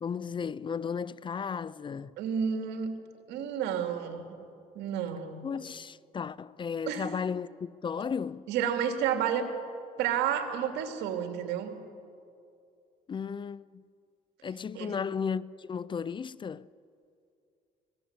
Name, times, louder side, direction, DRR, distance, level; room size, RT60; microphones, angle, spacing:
voice 1, 0.0-2.1 5.4-8.5 13.1-13.8 14.4-16.7, left 6 dB, 30° left, 0.5 m, -34 dB
voice 2, 2.2-2.9 3.3-4.3 4.7-5.4 6.9-7.1 8.5-9.5 10.0-11.7 14.7-15.0, right 8 dB, 90° right, 2.7 m, -30 dB
24.5 x 19.0 x 8.2 m
cardioid pair, 110°, 17 cm